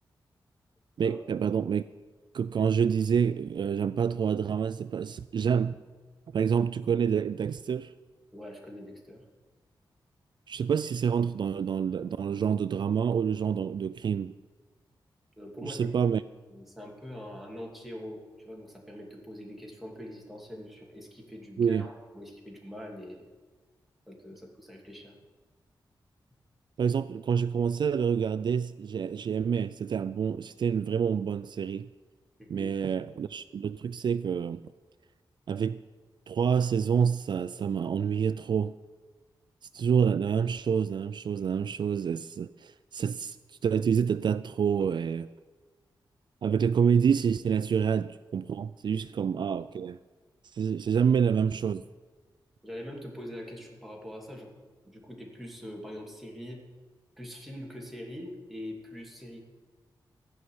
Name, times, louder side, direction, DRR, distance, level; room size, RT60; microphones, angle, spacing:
voice 1, 1.0-1.8 2.3-5.8 6.3-7.9 10.5-14.3 15.6-16.2 21.6-21.9 26.8-31.9 32.5-34.6 35.5-35.8 36.3-38.7 39.7-43.4 43.6-45.3 46.4-50.0 50.5-51.8, right 7 dB, 65° right, 0.3 m, -27 dB
voice 2, 8.3-9.2 15.4-16.0 16.5-23.3 24.1-25.2 32.4-32.7 46.5-46.6 48.9-49.0 51.0-51.1 52.6-54.5 54.8-56.6 57.2-59.4, equal, ahead, 2.7 m, -43 dB
15.0 x 5.7 x 9.5 m
wide cardioid pair, 95°, 8 cm